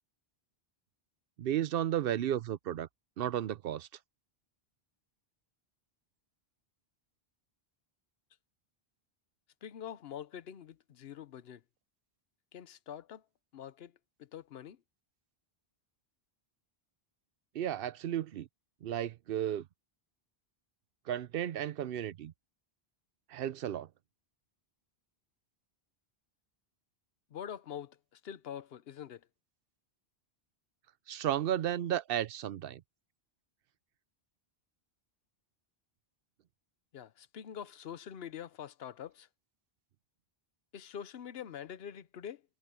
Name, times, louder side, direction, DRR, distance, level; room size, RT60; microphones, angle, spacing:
voice 1, 1.4-2.9 3.2-3.9 17.5-18.5 18.8-19.6 21.1-22.3 23.3-23.9 31.1-32.8, right 11 dB, 65° right, 0.8 m, -33 dB
voice 2, 9.6-11.6 12.5-13.2 13.5-13.9 14.2-14.8 27.3-29.3 36.9-39.3 40.7-42.4, left 9 dB, 75° left, 1.0 m, -45 dB
omnidirectional pair, 1.0 m